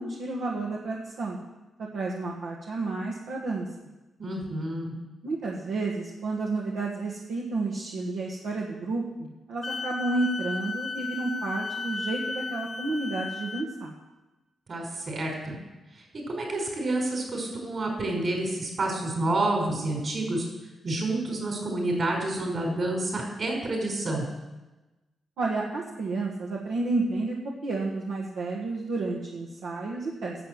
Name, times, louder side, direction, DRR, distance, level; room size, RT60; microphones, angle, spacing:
voice 1, 0.0-1.4 1.8-3.7 5.2-13.9 25.4-27.4 27.6-30.4, right 3 dB, 80° right, -3 dB, 1.6 m, -31 dB
voice 2, 4.2-5.0 14.7-15.5 16.3-20.5 20.8-24.3, right 2 dB, 55° right, 0 dB, 5.4 m, -29 dB
Wind instrument woodwind instrument, 9.6-13.7, left 4 dB, 50° left, 1.0 m, -34 dB
11.0 x 7.6 x 7.8 m, 1.1 s
supercardioid pair, 50°, 0 cm